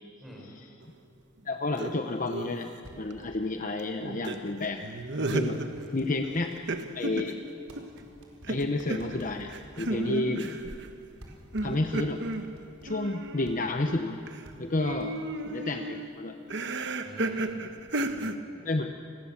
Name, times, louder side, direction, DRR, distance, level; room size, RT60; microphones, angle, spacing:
voice 1, 0.2-0.6 5.7-5.9 9.9-10.1 17.0-17.6 18.0-18.7, equal, ahead, -3 dB, 5.6 m, -47 dB
voice 2, 1.4-2.7 3.0-4.9 5.3-5.6 5.9-6.5 6.9-7.4 8.5-10.7 11.6-12.2 12.8-14.2 14.6-15.1 15.4-16.4 18.6-18.9, left 2 dB, 40° left, 5 dB, 0.9 m, -30 dB
sound 1, 1.7-2.9 3.1-3.2 4.0-8.1 8.4-10.9 11.5-14.5 14.8-18.4, right 2 dB, 55° right, 1.2 m, -34 dB
sound 2, 2.8-2.9 3.6-3.8 4.4-10.9 11.2-12.9 13.4-13.5 14.0-14.1 14.4-14.5 14.9-15.3, equal, 85° right, 4.7 m, -52 dB
29.0 x 21.0 x 7.4 m, 2.7 s
head